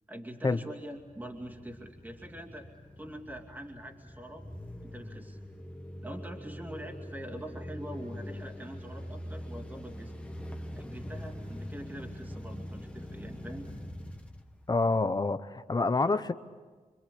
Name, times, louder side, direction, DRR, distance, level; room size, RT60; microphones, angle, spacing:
voice 1, 0.1-2.7 3.0-4.4 4.8-5.4 6.0-10.1 10.8-13.7, right 1 dB, 15° right, 1 dB, 2.5 m, -44 dB
sound 1, 0.9-15.2, equal, 10° left, 1.6 m, -43 dB
voice 2, 14.7-16.3, left 3 dB, 30° left, 11 dB, 0.8 m, -27 dB
26.5 x 26.0 x 8.5 m, 1.4 s
wide cardioid pair, 145°, 14 cm